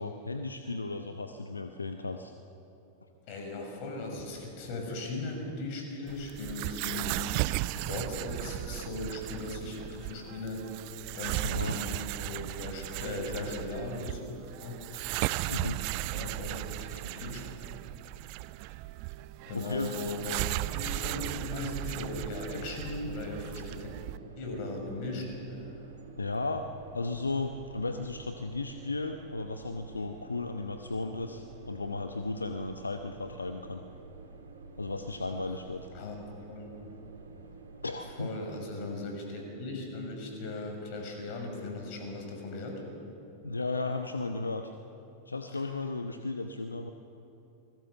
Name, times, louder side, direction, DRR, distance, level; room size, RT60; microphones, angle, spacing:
voice 1, 0.0-2.3 11.4-11.8 15.5-15.8 19.5-20.1 26.2-26.6 26.9-33.8 34.8-35.9 37.8-38.3 43.4-44.7 45.3-46.9, left 3 dB, 80° left, 7 dB, 0.9 m, -35 dB
voice 2, 3.3-14.2 14.6-14.8 16.1-17.4 19.5-20.4 20.7-23.9 24.4-25.3 35.9-36.2 36.5-36.8 38.2-42.8 45.5-45.6, left 2 dB, 45° left, 3 dB, 6.3 m, -38 dB
sound 1, 6.1-24.2, right 19 dB, 45° right, 0.5 m, -36 dB
sound 2, 23.1-38.2, right 4 dB, 70° right, 2.6 m, -49 dB
28.0 x 21.0 x 6.9 m, 2.9 s
figure-of-eight pair, 90°, 0 cm